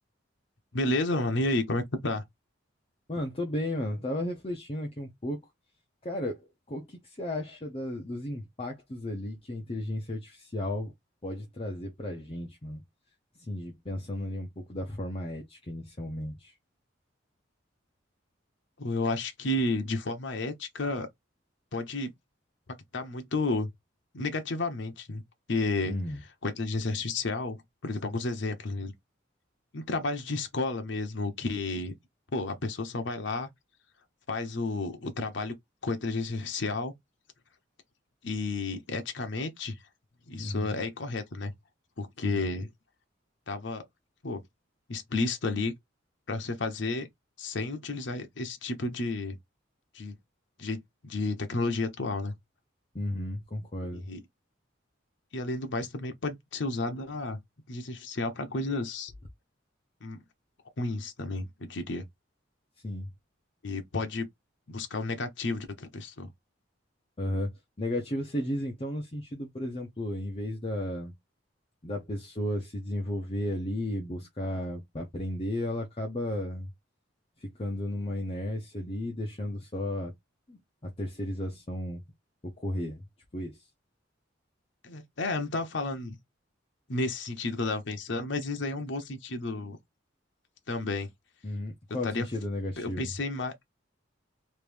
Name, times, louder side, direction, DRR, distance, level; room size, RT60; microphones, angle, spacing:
voice 1, 0.7-2.2 18.8-21.1 21.7-22.1 22.9-23.7 24.1-25.2 25.5-25.9 26.4-27.6 27.8-28.9 29.7-31.9 32.3-33.5 34.3-35.5 35.8-36.9 38.2-39.8 40.3-41.5 42.0-42.7 43.5-43.8 44.2-44.4 44.9-45.7 46.3-47.1 47.4-49.4 49.9-50.2 50.6-52.3 53.9-54.2 55.3-57.4 57.7-59.1 60.0-60.2 60.8-62.0 63.6-64.3 64.7-66.3 84.8-86.2 86.9-89.8 90.7-91.1 92.0-92.3 92.8-93.5, left 2 dB, 65° left, 0.8 m, -31 dB
voice 2, 3.1-5.4 6.0-10.9 11.2-12.8 13.5-16.6 25.8-26.2 40.4-40.8 42.2-42.4 52.9-54.1 62.8-63.1 67.2-67.5 67.8-71.1 71.8-76.7 77.4-80.1 80.5-82.0 82.6-83.0 83.3-83.6 91.4-93.1, left 1 dB, 30° left, 0.7 m, -34 dB
3.2 x 2.6 x 3.3 m
head